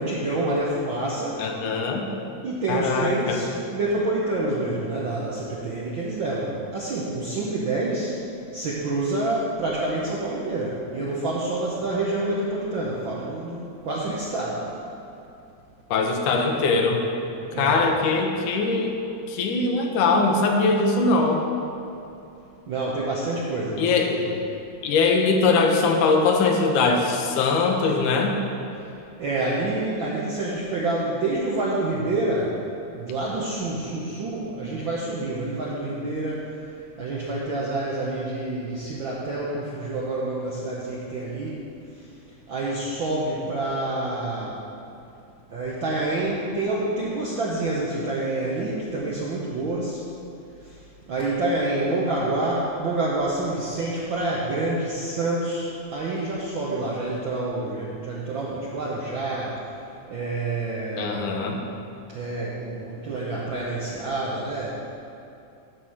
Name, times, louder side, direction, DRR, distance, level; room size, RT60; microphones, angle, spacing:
voice 1, 0.0-1.4 2.4-8.2 8.5-14.6 17.5-17.8 22.7-24.3 29.2-32.6 32.9-36.5 37.0-41.5 41.9-42.0 42.5-44.6 45.5-50.0 50.6-50.8 51.1-59.6 60.1-61.4 62.1-64.8, right 2 dB, 70° right, -5 dB, 1.2 m, -27 dB
voice 2, 1.4-2.0 2.7-3.4 15.9-17.1 17.6-19.0 19.3-21.4 23.8-24.1 24.8-28.4 61.0-61.6, left 3 dB, 85° left, 2 dB, 2.4 m, -21 dB
10.5 x 4.9 x 7.3 m, 2.7 s
omnidirectional pair, 3.5 m